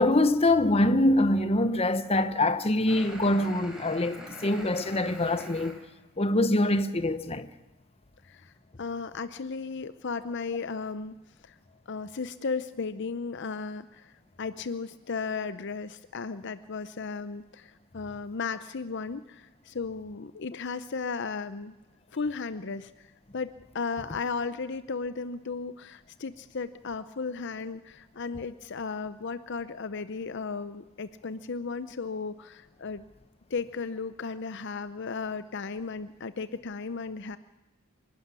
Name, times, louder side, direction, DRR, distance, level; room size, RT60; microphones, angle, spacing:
voice 1, 0.0-5.8 6.2-7.5, left 1 dB, 25° left, 0.9 m, -24 dB
sound 1, 2.9-5.8, right 1 dB, 5° right, 3.9 m, -44 dB
voice 2, 8.8-11.2 11.4-11.6 11.9-14.1 14.4-21.7 22.1-23.1 23.3-33.0 33.5-37.4, left 4 dB, 55° left, 0.6 m, -35 dB
25.5 x 12.0 x 9.6 m
head